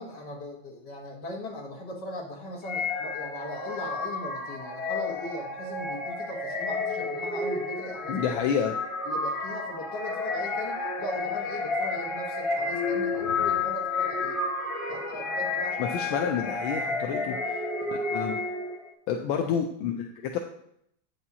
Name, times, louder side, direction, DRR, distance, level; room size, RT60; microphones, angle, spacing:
voice 1, 0.0-8.3 9.1-14.4 14.9-16.0 17.3-17.5 19.3-19.5, left 1 dB, 55° left, -2 dB, 2.1 m, -39 dB
sound 1, 2.6-18.9, left 3 dB, 20° left, 0.9 m, -31 dB
voice 2, 8.1-8.7 15.8-17.3 17.9-18.4 19.1-20.4, left 7 dB, 80° left, 2 dB, 1.5 m, -29 dB
8.6 x 7.3 x 2.8 m, 0.70 s
omnidirectional pair, 2.2 m